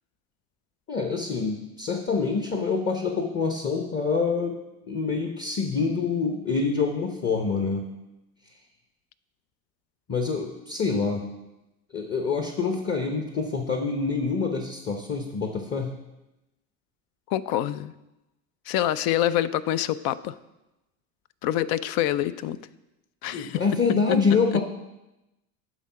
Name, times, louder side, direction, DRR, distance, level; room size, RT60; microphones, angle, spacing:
voice 1, 0.9-4.6 4.9-7.9 10.1-11.3 11.9-15.9 23.3-24.6, left 4 dB, 25° left, 4 dB, 1.0 m, -26 dB
voice 2, 17.3-17.9 18.7-20.3 21.4-22.6 23.2-23.6, left 12 dB, 55° left, 16 dB, 0.5 m, -26 dB
10.0 x 3.8 x 5.7 m, 0.96 s
hypercardioid pair, 80°, 44 cm